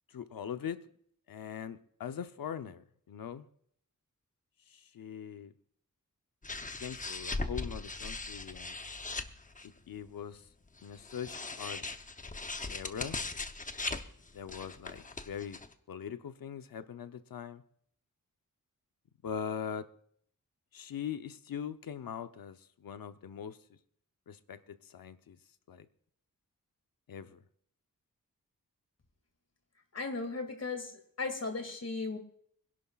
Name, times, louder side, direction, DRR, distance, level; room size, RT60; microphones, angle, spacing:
voice 1, 0.1-0.8 1.3-3.5 4.7-5.5 6.8-8.8 9.9-10.5 10.8-11.8 12.7-13.2 14.3-15.6 15.9-17.6 19.2-19.9 20.7-23.6 24.3-25.4 25.7-25.9 27.1-27.4, left 8 dB, 90° left, 0.8 m, -41 dB
sound 1, 6.4-9.8 10.8-15.7, left 3 dB, 25° left, 0.7 m, -39 dB
voice 2, 29.9-32.2, left 3 dB, 50° left, 2.2 m, -36 dB
26.0 x 11.5 x 2.4 m
wide cardioid pair, 130°, 33 cm